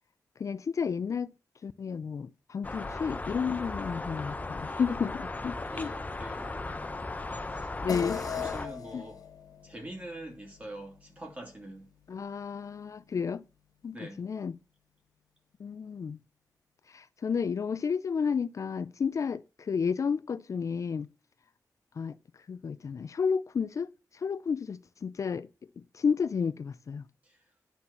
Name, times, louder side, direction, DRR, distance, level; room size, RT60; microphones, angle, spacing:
voice 1, 0.4-1.3 1.6-5.9 7.8-8.2 8.9-9.0 12.1-13.4 13.8-14.6 15.6-16.2 16.9-21.1 22.0-22.1 22.5-23.9 24.1-25.5 25.8-27.0, left 6 dB, 55° left, 0.4 m, -32 dB
sound 1, 2.6-8.7, left 2 dB, 25° left, 0.7 m, -37 dB
voice 2, 5.7-6.7 7.5-9.2 9.6-11.9 13.9-14.2 27.2-27.4, right 1 dB, 20° right, 2.9 m, -44 dB
sound 2, 7.9-12.6, left 8 dB, 75° left, 1.5 m, -41 dB
10.5 x 4.3 x 7.0 m
wide cardioid pair, 130°, 6 cm